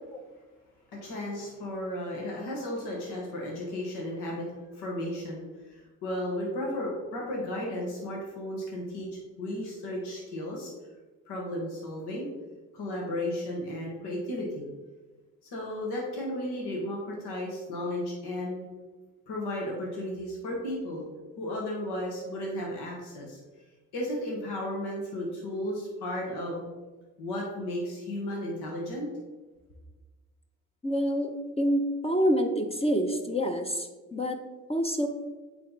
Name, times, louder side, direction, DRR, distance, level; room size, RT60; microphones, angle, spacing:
voice 1, 0.9-9.1 9.4-10.7 11.3-12.3 12.7-14.7 15.5-18.7 19.3-21.1 21.4-23.4 23.9-26.6 27.2-29.1, left 1 dB, 70° left, -2 dB, 1.5 m, -34 dB
voice 2, 30.8-34.4 34.7-35.1, equal, 15° left, 5 dB, 0.7 m, -27 dB
8.2 x 3.3 x 4.0 m, 1.3 s
hypercardioid pair, 50°, 40 cm